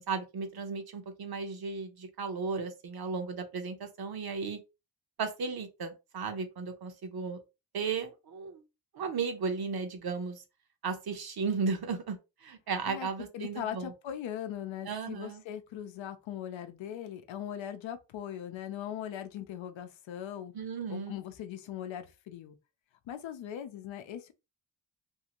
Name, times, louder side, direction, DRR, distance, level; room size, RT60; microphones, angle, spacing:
voice 1, 0.0-4.6 5.2-7.4 7.7-8.6 8.9-10.4 10.8-12.2 12.4-13.9 14.8-15.4 20.5-21.2, right 5 dB, 55° right, 0.8 m, -35 dB
voice 2, 13.3-20.5 20.9-22.6 23.1-24.3, left 10 dB, 90° left, 0.6 m, -40 dB
2.7 x 2.5 x 2.8 m
cardioid pair, 85°, 45 cm